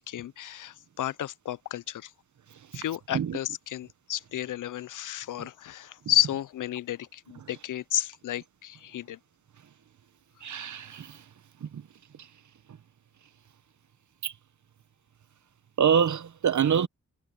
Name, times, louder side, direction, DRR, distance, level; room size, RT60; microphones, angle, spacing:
voice 1, 0.1-2.1 2.7-9.2, left 12 dB, 85° left, 0.5 m, -32 dB
voice 2, 2.5-2.8 3.1-3.4 5.4-5.5 10.4-11.3 11.6-11.9 12.1-12.3 12.7-12.8 14.2-14.3 15.8-16.9, right 8 dB, 70° right, 1.0 m, -27 dB
wide cardioid pair, 135°, 30 cm